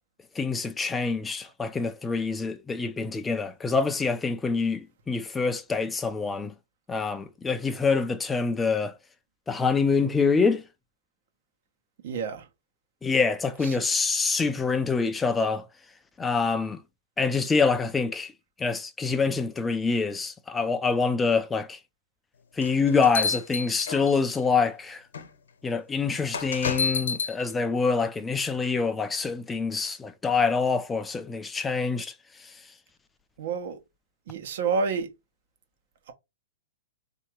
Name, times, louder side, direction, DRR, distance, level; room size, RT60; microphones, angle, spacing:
voice 1, 0.4-6.5 6.9-9.0 9.5-10.6 13.0-15.7 16.2-16.8 17.2-18.3 18.6-21.8 22.6-25.0 25.6-32.1, left 4 dB, 10° left, 0.4 m, -26 dB
voice 2, 12.0-12.5 13.6-13.8 33.4-33.8 34.3-35.1, right 5 dB, 55° right, 1.2 m, -29 dB
sound 1, 22.6-24.4 25.1-25.3 26.3-27.3, left 5 dB, 80° left, 0.9 m, -29 dB
3.7 x 2.9 x 4.5 m
hypercardioid pair, 155°, 0 cm